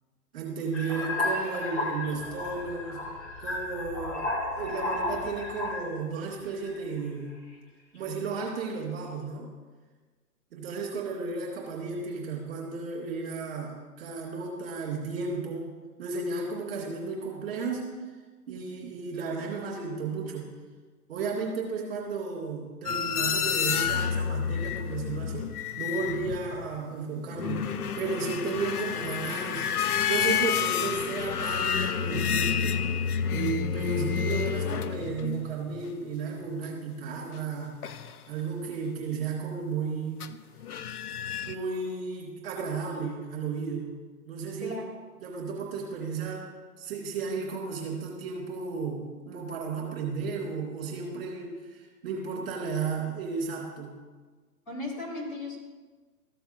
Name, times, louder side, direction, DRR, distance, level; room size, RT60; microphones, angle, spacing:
voice 1, 0.3-3.0 3.4-7.3 7.9-9.5 10.5-15.7 16.0-17.9 18.5-20.5 21.1-25.5 25.8-29.7 30.1-32.8 33.3-37.8 38.3-40.3 41.4-44.0 44.3-44.8 45.2-46.4 46.8-54.0, right 4 dB, 40° right, -4 dB, 2.4 m, -34 dB
sound 1, 0.7-6.0 6.6-7.0, left 2 dB, 50° left, 2.5 m, -33 dB
sound 2, 22.9-26.8 27.2-35.8 37.8-38.1 40.2-40.4 40.6-41.6, left 7 dB, 70° left, 0.6 m, -29 dB
voice 2, 54.7-55.6, left 2 dB, 20° left, -6 dB, 2.8 m, -36 dB
14.0 x 6.9 x 2.6 m, 1.4 s
figure-of-eight pair, 130°, 47 cm